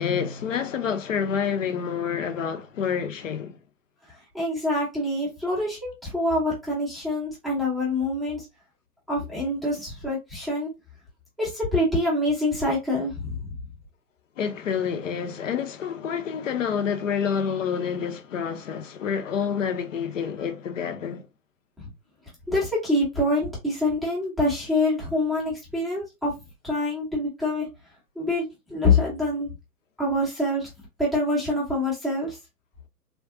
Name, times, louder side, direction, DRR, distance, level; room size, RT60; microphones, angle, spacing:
voice 1, 0.0-3.6 14.4-21.3, left 7 dB, 55° left, 0.6 m, -28 dB
voice 2, 4.1-8.5 9.1-10.7 11.4-13.6 21.8-21.9 22.5-26.4 26.6-27.7 28.2-29.5 30.0-30.7 31.0-32.4, left 2 dB, ahead, 0.6 m, -25 dB
3.5 x 2.3 x 2.5 m
figure-of-eight pair, 120°, 46 cm